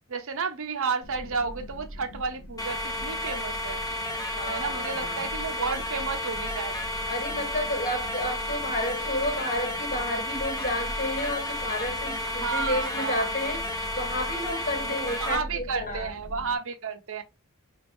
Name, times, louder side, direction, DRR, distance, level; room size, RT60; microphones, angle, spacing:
voice 1, 0.1-3.8 4.5-6.8 12.3-13.5 14.8-17.2, right 5 dB, 65° right, 0.8 m, -32 dB
sound 1, 1.0-16.6, equal, 80° left, 1.1 m, -42 dB
sound 2, 2.6-15.3, left 1 dB, 15° left, 0.8 m, -32 dB
voice 2, 4.1-5.2 7.1-16.1, left 1 dB, 40° left, 1.3 m, -31 dB
3.9 x 3.5 x 2.6 m
head